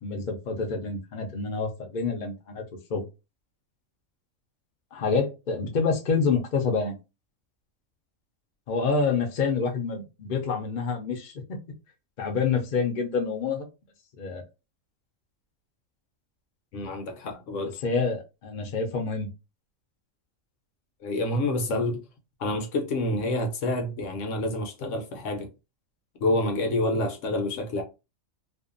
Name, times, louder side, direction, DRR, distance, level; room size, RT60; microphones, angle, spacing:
voice 1, 0.0-2.6 2.9-3.0 4.9-6.9 8.7-11.6 12.2-13.7 14.2-14.4 17.8-19.3, left 5 dB, 50° left, 0.5 m, -27 dB
voice 2, 16.7-17.8 21.0-22.0 22.4-25.5 26.2-27.8, left 1 dB, 70° left, 0.9 m, -28 dB
2.6 x 2.2 x 2.5 m
omnidirectional pair, 1.4 m